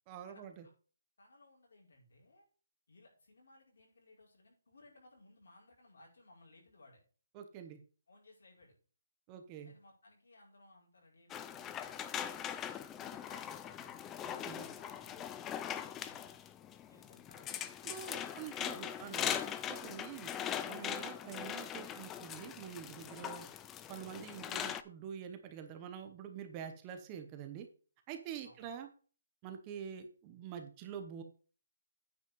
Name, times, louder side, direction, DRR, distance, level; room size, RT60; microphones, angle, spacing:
voice 1, 0.1-0.6 7.3-7.8 9.3-9.7 14.2-14.7 17.8-20.3 20.7-23.5 23.9-27.7 28.1-28.9 29.4-31.2, right 8 dB, 20° right, 6 dB, 0.9 m, -46 dB
voice 2, 1.2-2.4 2.9-7.0 8.1-8.7 9.6-12.6 13.0-14.0 14.3-16.3 16.9-19.3 28.4-28.7, left 2 dB, 70° left, -2 dB, 5.4 m, -62 dB
sound 1, 11.3-24.8, left 9 dB, 10° left, 0.4 m, -41 dB
9.2 x 5.2 x 5.4 m, 0.38 s
hypercardioid pair, 170°, 0 cm